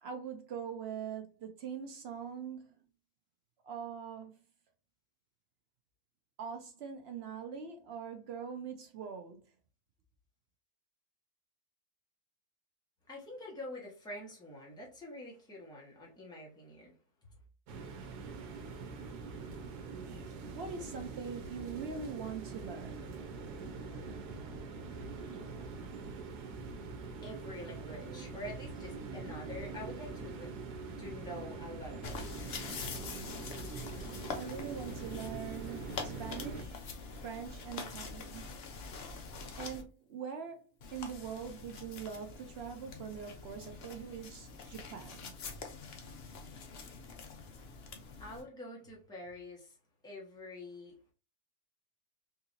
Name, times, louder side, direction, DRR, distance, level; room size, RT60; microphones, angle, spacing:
voice 1, 0.0-2.8 3.6-4.3 6.4-9.5 20.5-23.2 34.3-36.8 37.2-38.5 39.6-45.3, right 7 dB, 70° right, 0.6 m, -43 dB
voice 2, 13.1-16.9 27.2-30.6 31.0-32.9 48.2-49.8 50.0-51.0, left 1 dB, 5° left, 1.0 m, -46 dB
sound 1, 17.7-36.6, right 4 dB, 90° right, 1.2 m, -44 dB
sound 2, 32.0-39.8 40.8-48.4, left 4 dB, 55° left, 0.7 m, -45 dB
3.7 x 2.8 x 2.6 m
omnidirectional pair, 1.7 m